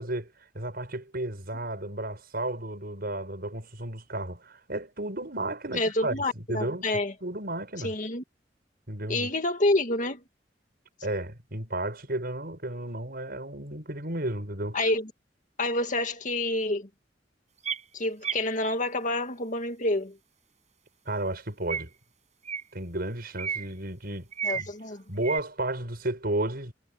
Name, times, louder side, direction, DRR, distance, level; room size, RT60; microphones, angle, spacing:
voice 1, 0.0-6.9 7.2-7.9 8.9-9.3 11.0-14.8 21.0-21.9 22.7-24.3 24.5-24.7 25.1-26.7, right 1 dB, 60° right, 6.8 m, -33 dB
voice 2, 5.7-7.1 7.8-8.2 9.1-10.2 14.7-15.1 15.6-16.9 17.9-20.2 24.4-25.0, left 2 dB, 45° left, 2.0 m, -28 dB
sound 1, 17.6-17.8 18.2-18.4 21.7-21.8 22.4-22.6 23.4-23.7 24.3-24.7 25.2-25.4, right 7 dB, 40° right, 7.2 m, -31 dB
head